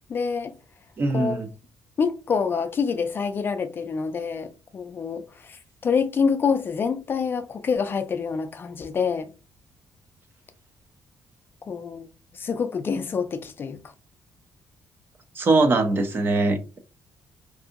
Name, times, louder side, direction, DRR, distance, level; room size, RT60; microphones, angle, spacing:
voice 1, 0.1-0.5 1.1-1.4 2.0-9.3 11.6-12.1 12.3-13.8, left 5 dB, 35° left, 0.3 m, -26 dB
voice 2, 1.0-1.5 15.4-16.8, right 2 dB, 35° right, 0.5 m, -22 dB
2.7 x 2.6 x 2.4 m
cardioid pair, 125°, 6 cm